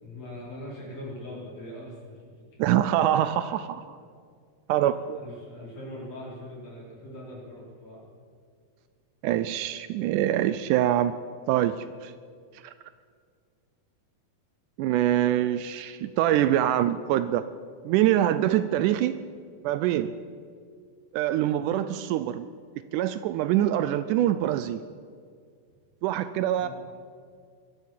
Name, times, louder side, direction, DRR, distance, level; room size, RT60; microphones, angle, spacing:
voice 1, 0.0-2.3 4.7-8.0 26.6-26.7, left 1 dB, 45° left, -6 dB, 5.9 m, -41 dB
voice 2, 2.6-4.0 4.7-5.2 9.2-11.2 11.5-12.1 12.6-12.7 14.8-17.5 17.9-19.2 19.6-20.2 21.1-22.5 22.9-24.8 26.0-26.7, right 12 dB, 80° right, 13 dB, 1.9 m, -24 dB
23.0 x 8.0 x 7.5 m, 2.1 s
omnidirectional pair, 3.8 m